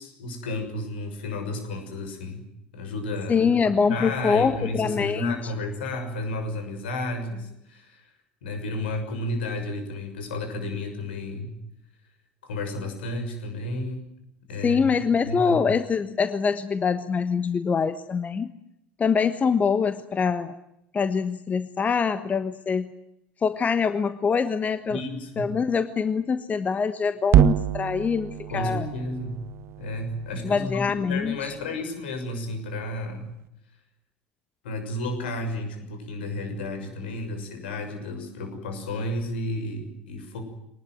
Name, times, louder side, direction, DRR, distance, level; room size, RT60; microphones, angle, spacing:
voice 1, 0.0-2.5 2.7-3.6 3.9-8.1 8.4-11.6 12.4-14.1 14.5-15.6 24.9-25.5 28.5-29.4 29.8-33.3 34.6-40.4, left 1 dB, 65° left, 6 dB, 6.5 m, -32 dB
voice 2, 3.3-5.5 14.6-18.5 19.0-20.5 20.9-22.9 23.4-25.0 25.4-28.9 30.4-31.5, left 5 dB, 25° left, 12 dB, 1.3 m, -24 dB
sound 1, 27.3-31.6, right 11 dB, 45° right, 1.2 m, -26 dB
24.5 x 20.0 x 9.4 m, 0.82 s
figure-of-eight pair, 70°, 6 cm